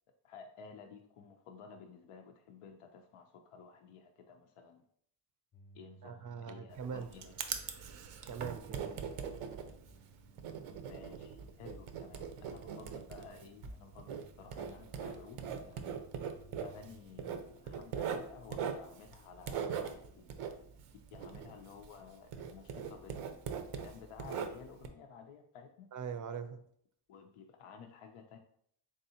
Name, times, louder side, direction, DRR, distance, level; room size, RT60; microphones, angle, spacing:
voice 1, 0.2-4.8 5.7-7.3 10.9-16.0 16.6-20.3 21.1-25.9 27.1-28.4, left 6 dB, 85° left, 4 dB, 0.6 m, -54 dB
sound 1, 5.5-17.0, right 3 dB, 25° left, 0.3 m, -62 dB
voice 2, 6.0-7.1 8.3-9.0 12.4-12.8 25.9-26.6, right 6 dB, 40° right, 10 dB, 0.4 m, -42 dB
Writing, 6.7-22.0 22.3-24.9, right 7 dB, 85° right, 0.6 m, -41 dB
3.6 x 3.4 x 2.7 m, 0.67 s
cardioid pair, 85°, 50 cm